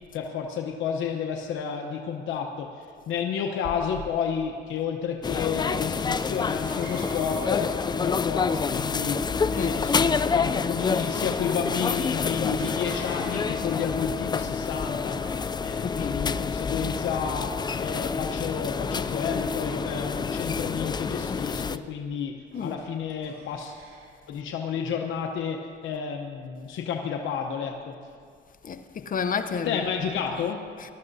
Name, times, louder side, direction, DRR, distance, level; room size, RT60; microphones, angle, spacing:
voice 1, 0.1-2.7 3.1-15.2 15.6-22.3 22.6-23.7 24.3-27.9 29.6-30.7, left 7 dB, 80° left, 0.9 m, -31 dB
sound 1, 5.2-21.8, left 5 dB, 20° left, 0.3 m, -28 dB
sound 2, 6.1-9.7, equal, 5° right, 3.8 m, -52 dB
Cough, 6.7-9.0 12.6-14.3 15.0-15.9 16.7-17.4 18.0-18.3 19.3-20.9 22.5-22.8 23.2-24.1, right 3 dB, 85° right, 2.9 m, -48 dB
voice 2, 15.8-16.2 22.5-22.8 28.6-29.8 30.8-30.9, left 6 dB, 45° left, 0.7 m, -30 dB
21.0 x 12.0 x 2.7 m
cardioid pair, 90°, 20 cm